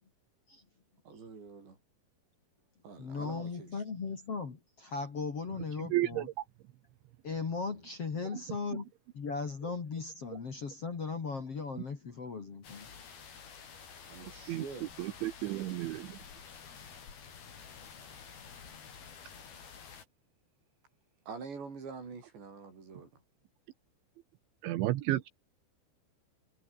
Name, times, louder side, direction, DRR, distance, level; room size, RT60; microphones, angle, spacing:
voice 1, 1.1-1.8 2.8-3.8 14.1-14.9 21.3-23.1, right 5 dB, 60° right, 9.0 m, -46 dB
voice 2, 3.0-6.3 7.2-12.9, left 4 dB, 35° left, 3.0 m, -38 dB
voice 3, 5.9-6.3 14.5-14.7 15.0-16.2 24.6-25.3, right 15 dB, 80° right, 3.4 m, -32 dB
sound 1, 12.6-20.0, left 6 dB, 55° left, 5.8 m, -50 dB
omnidirectional pair, 5.6 m